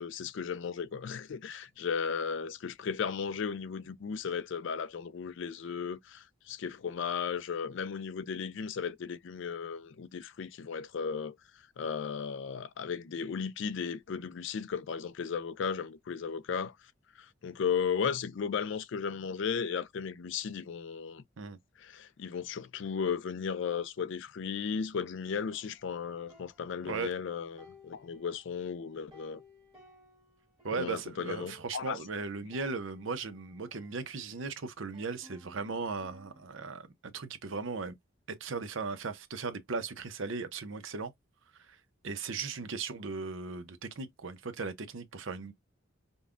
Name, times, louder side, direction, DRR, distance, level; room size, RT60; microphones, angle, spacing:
voice 1, 0.0-11.4 11.8-16.8 17.2-21.2 21.8-29.4 30.7-32.0, left 6 dB, 65° left, 0.4 m, -35 dB
sound 1, 25.5-27.2 27.6-30.9 31.1-31.2 31.4-32.0 32.5-34.5 34.9-36.6, left 3 dB, 25° right, 1.6 m, -59 dB
voice 2, 30.6-36.9 37.1-38.0 38.4-41.1 41.6-41.8 42.0-45.5, right 4 dB, 70° right, 0.7 m, -37 dB
5.3 x 2.2 x 2.5 m
head